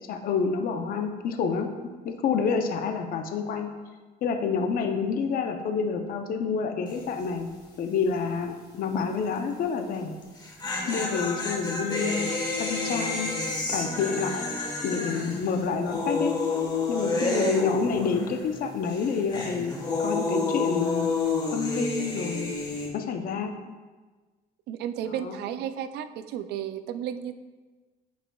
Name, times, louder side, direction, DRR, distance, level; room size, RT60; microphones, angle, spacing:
voice 1, 0.1-1.7 2.0-3.7 4.2-7.5 7.8-10.2 10.9-12.3 12.6-13.3 13.7-14.4 14.8-16.3 16.9-21.1 21.5-22.5 22.9-23.5 25.2-25.4, left 5 dB, 60° left, 5 dB, 0.6 m, -28 dB
sound 1, 6.9-7.2 7.5-7.6 10.2-18.6 18.8-22.9, left 3 dB, 25° left, 1.3 m, -29 dB
voice 2, 24.7-27.3, right 9 dB, 80° right, 12 dB, 0.4 m, -33 dB
8.9 x 4.8 x 2.3 m, 1.3 s
cardioid pair, 110°, 17 cm